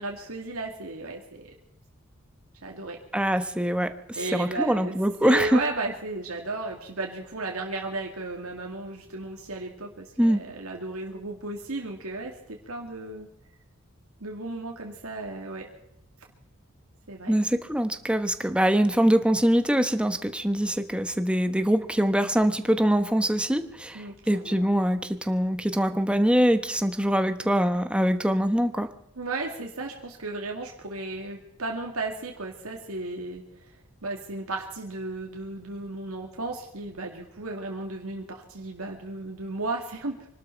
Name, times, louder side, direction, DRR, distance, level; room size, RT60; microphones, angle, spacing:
voice 1, 0.0-1.5 2.6-3.0 4.2-5.0 5.2-13.3 14.2-15.7 17.1-17.3 23.9-24.7 29.2-33.4 34.0-40.3, right 2 dB, 75° right, 1 dB, 2.3 m, -34 dB
voice 2, 3.1-3.9 4.3-5.6 10.2-10.4 17.3-28.9, equal, 5° right, 8 dB, 1.1 m, -23 dB
25.5 x 12.5 x 4.5 m, 0.84 s
head